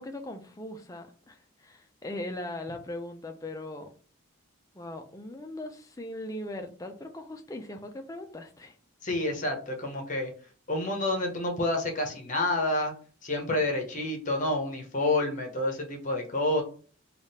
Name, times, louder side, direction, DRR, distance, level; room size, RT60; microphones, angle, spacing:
voice 1, 0.0-3.9 4.7-8.8, left 1 dB, 15° left, 0.4 m, -39 dB
voice 2, 9.0-10.3 10.7-12.9 13.2-16.6, left 2 dB, 35° left, 0.8 m, -28 dB
3.5 x 2.4 x 4.1 m
head